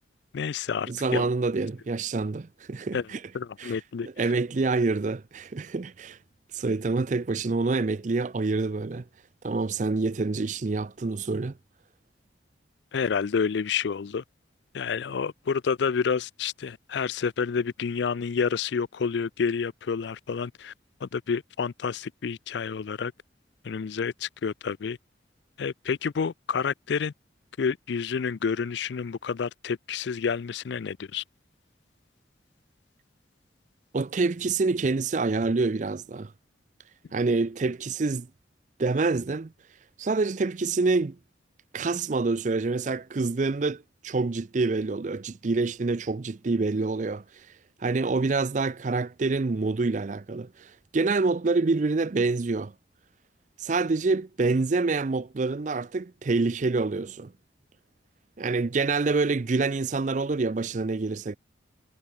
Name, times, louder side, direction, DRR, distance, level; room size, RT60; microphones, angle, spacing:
voice 1, 0.3-1.3 2.9-3.1 3.3-4.1 12.9-14.2 14.7-20.7 21.0-23.1 23.6-25.0 25.6-27.1 27.6-31.2, left 6 dB, 70° left, 0.4 m, -29 dB
voice 2, 0.9-3.2 3.6-3.7 4.0-6.2 6.5-9.0 9.4-11.5 33.9-36.3 37.1-38.3 38.8-39.5 40.0-41.2 41.7-47.2 47.8-52.7 53.6-57.3 58.4-61.4, right 3 dB, 40° right, 0.5 m, -26 dB
head